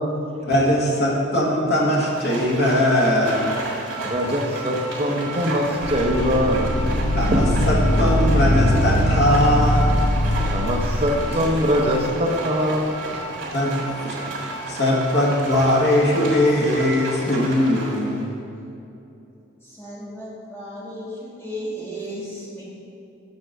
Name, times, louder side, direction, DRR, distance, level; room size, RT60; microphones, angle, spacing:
voice 1, 0.5-3.6 7.1-10.1 13.5-18.3, left 1 dB, 55° left, -2 dB, 1.2 m, -20 dB
Livestock farm animals working animals, 1.9-18.3, right 2 dB, 75° right, 1.7 m, -34 dB
sound 1, 2.3-17.1, right 3 dB, 30° left, 0.9 m, -37 dB
voice 2, 4.0-6.8 7.3-7.4 10.5-13.1, equal, 30° right, 1 dB, 0.7 m, -22 dB
sound 2, 5.8-12.0, left 1 dB, 80° left, 0.8 m, -21 dB
voice 3, 19.6-22.6, equal, 10° left, -7 dB, 1.5 m, -34 dB
6.6 x 3.9 x 6.3 m, 2.8 s
head